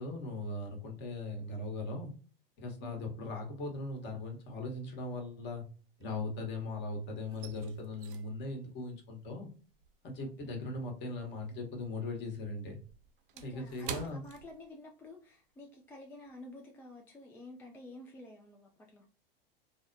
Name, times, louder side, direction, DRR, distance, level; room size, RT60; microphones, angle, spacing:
voice 1, 0.0-2.1 2.6-5.6 6.0-9.5 10.0-12.8 13.4-14.2, left 2 dB, 40° left, 2 dB, 1.1 m, -39 dB
sound 1, 3.8-4.4 4.7-6.7 6.9-11.6 11.9-15.2 15.5-15.7 16.2-16.4, right 7 dB, 65° right, 0.5 m, -49 dB
voice 2, 10.2-10.6 13.3-19.0, left 2 dB, 10° left, 0 dB, 0.3 m, -51 dB
3.5 x 2.1 x 2.6 m, 0.37 s
hypercardioid pair, 95°, 29 cm